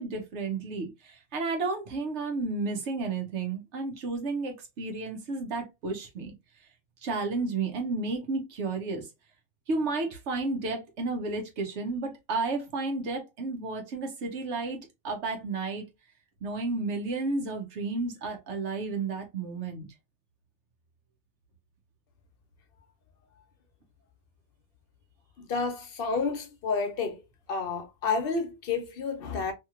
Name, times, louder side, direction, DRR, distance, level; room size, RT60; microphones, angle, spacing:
voice 1, 0.0-6.3 7.0-9.1 9.7-15.9 16.4-19.9, right 3 dB, 80° right, 1.1 m, -32 dB
voice 2, 25.4-27.2 27.5-29.5, left 4 dB, 60° left, 0.9 m, -30 dB
2.9 x 2.8 x 2.4 m
omnidirectional pair, 1.2 m